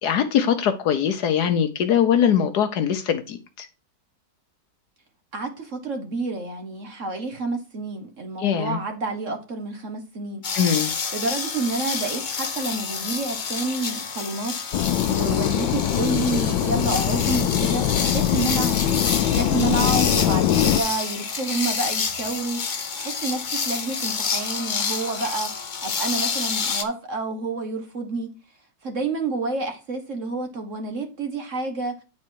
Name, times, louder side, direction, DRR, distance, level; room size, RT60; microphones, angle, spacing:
voice 1, 0.0-3.7 8.4-8.8 10.5-10.9, left 8 dB, 65° left, 1.3 m, -22 dB
voice 2, 5.3-10.4 11.1-14.6 15.1-22.6 23.0-25.5 25.8-28.3 28.8-31.9, right 3 dB, 50° right, 1.3 m, -29 dB
sound 1, 10.4-26.8, left 5 dB, 50° left, 0.5 m, -28 dB
sound 2, 14.7-20.8, left 11 dB, 90° left, 1.4 m, -22 dB
9.5 x 4.3 x 4.6 m
omnidirectional pair, 1.9 m